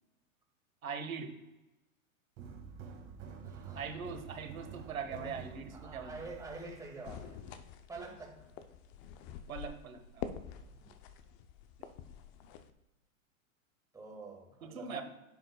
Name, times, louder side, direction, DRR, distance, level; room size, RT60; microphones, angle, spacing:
voice 1, 0.8-1.3 3.7-6.1 9.5-10.3 11.8-11.9 14.6-15.0, right 6 dB, 80° right, 7 dB, 1.4 m, -41 dB
sound 1, 2.4-7.5, right 5 dB, 35° right, 1.9 m, -49 dB
voice 2, 3.4-4.1 4.8-5.4 5.7-7.4 7.9-8.4 10.7-11.0 13.9-15.0, right 3 dB, 10° right, -1 dB, 1.9 m, -47 dB
sound 2, 7.0-12.7, left 8 dB, 30° left, 0.5 m, -47 dB
10.0 x 7.7 x 2.3 m, 1.0 s
hypercardioid pair, 125°, 41 cm